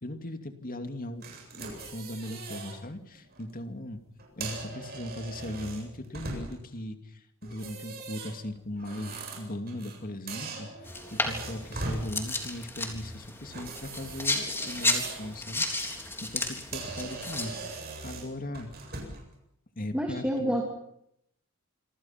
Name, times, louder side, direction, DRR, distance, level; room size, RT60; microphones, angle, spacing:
voice 1, 0.0-4.0 4.4-18.7 19.8-20.5, left 1 dB, 40° left, 7 dB, 2.6 m, -39 dB
sound 1, 1.2-2.8 3.2-3.4 4.2-6.7 7.4-10.0 10.3-12.1 13.5-15.3 15.7-16.0 16.4-16.5 16.7-19.3, right 3 dB, 45° right, 7.9 m, -40 dB
sound 2, 10.8-17.8, left 2 dB, 10° left, 3.7 m, -33 dB
voice 2, 19.9-20.7, equal, 5° right, 1 dB, 3.0 m, -28 dB
27.0 x 25.5 x 5.9 m, 0.75 s
head